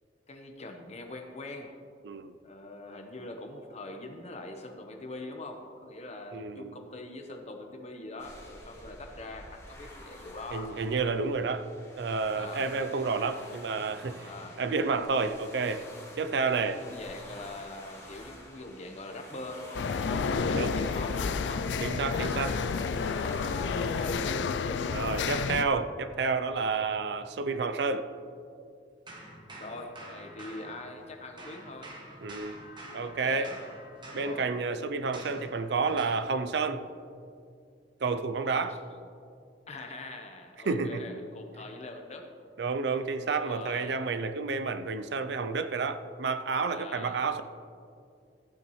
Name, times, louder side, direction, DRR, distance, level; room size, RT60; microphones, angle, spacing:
voice 1, 0.3-1.7 2.4-10.7 12.3-12.7 14.2-14.6 16.3-21.7 23.2-24.9 25.2-25.6 29.6-31.9 33.0-33.6 34.1-34.5 38.4-38.8 39.7-42.3 43.3-44.0 46.7-47.2, left 2 dB, 40° left, 1.0 m, -43 dB
voice 2, 6.3-6.7 10.5-11.7 12.0-14.3 14.6-15.9 16.2-16.8 20.1-20.8 21.8-22.6 24.9-28.1 32.2-32.6 32.9-33.5 34.1-36.8 38.0-38.8 40.6-41.0 42.6-47.4, right 4 dB, 70° right, 0.5 m, -30 dB
sound 1, 8.2-24.3, left 1 dB, 15° left, 2.5 m, -49 dB
sound 2, 19.7-25.6, left 5 dB, 85° left, 0.4 m, -30 dB
sound 3, 29.1-31.1 31.4-36.3, right 1 dB, 25° right, 1.3 m, -47 dB
15.0 x 8.8 x 3.1 m
head